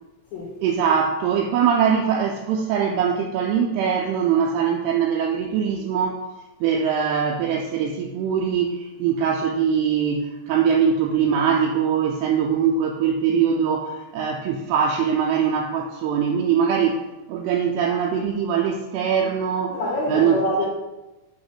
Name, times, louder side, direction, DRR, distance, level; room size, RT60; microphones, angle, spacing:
voice 1, 0.6-6.2 6.6-17.0 17.3-19.8 20.1-20.4, right 7 dB, 80° right, 0 dB, 2.4 m, -22 dB
voice 2, 19.7-20.7, left 1 dB, 70° left, -5 dB, 1.8 m, -25 dB
8.0 x 3.0 x 5.8 m, 1.0 s
omnidirectional pair, 5.0 m